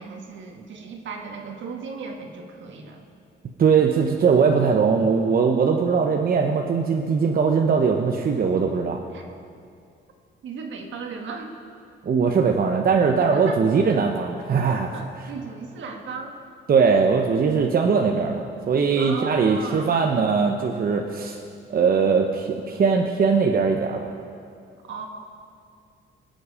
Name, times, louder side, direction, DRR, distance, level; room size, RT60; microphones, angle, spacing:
voice 1, 0.0-3.0 9.1-9.2 10.4-11.5 13.3-13.6 14.9-16.3 19.0-19.9 24.8-25.1, right 5 dB, 70° right, 2 dB, 1.8 m, -36 dB
voice 2, 3.6-9.0 12.0-14.9 16.7-21.4 21.7-24.1, right 5 dB, 45° right, 2 dB, 0.9 m, -20 dB
21.0 x 7.9 x 4.9 m, 2.4 s
cardioid pair, 90°, 20 cm